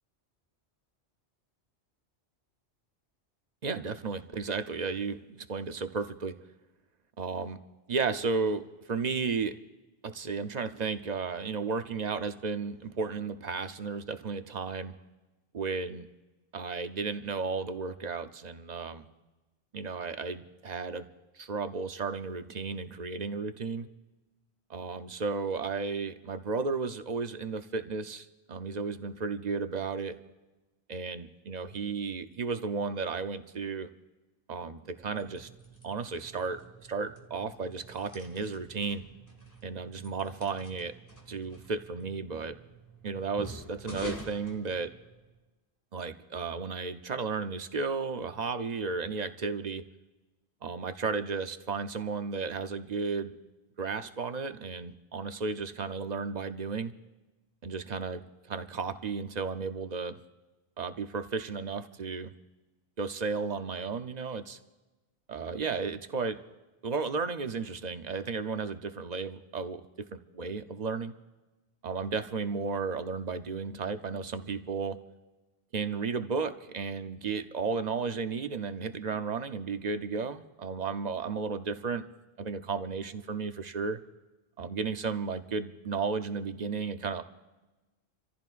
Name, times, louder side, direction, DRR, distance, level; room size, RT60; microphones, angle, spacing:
voice 1, 3.6-6.4 7.2-7.6 7.9-9.6 10.0-15.0 15.5-16.1 16.5-19.1 19.7-21.1 21.3-23.9 24.7-30.1 30.9-33.9 34.5-35.5 35.8-36.6 36.9-39.0 39.6-40.9 41.3-42.6 43.0-44.9 45.9-49.8 50.6-53.3 53.8-56.9 57.6-60.2 60.8-62.3 63.0-64.6 65.3-66.4 66.8-69.8 70.1-71.1 71.8-75.0 75.7-82.0 82.4-84.0 84.6-87.2, right 4 dB, 45° right, 9 dB, 0.7 m, -34 dB
sound 1, 34.9-45.4, right 1 dB, 15° left, 1.6 m, -48 dB
28.5 x 14.5 x 2.5 m, 1.1 s
omnidirectional pair, 1.2 m